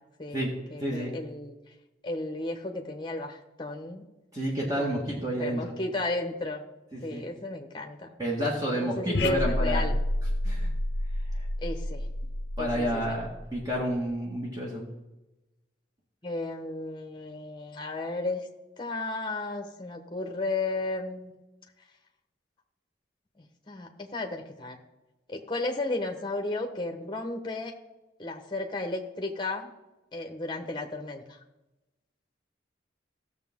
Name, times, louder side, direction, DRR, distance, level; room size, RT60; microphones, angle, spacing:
voice 1, 0.2-1.5 2.0-4.0 4.8-5.1 5.4-6.6 7.0-8.2 8.7-9.9 11.6-12.0 12.6-13.2 16.2-18.4 18.8-21.3 23.7-24.8 25.3-27.7 28.2-29.7 30.1-31.4, left 2 dB, 25° left, 3 dB, 1.1 m, -34 dB
voice 2, 0.8-1.1 4.3-5.7 6.9-7.2 8.2-9.9 10.4-10.7 11.3-11.5 12.6-14.9, equal, 20° right, -3 dB, 1.8 m, -30 dB
sound 1, 9.1-13.8, left 1 dB, 65° left, 0.7 m, -30 dB
16.0 x 6.8 x 3.7 m, 1.0 s
head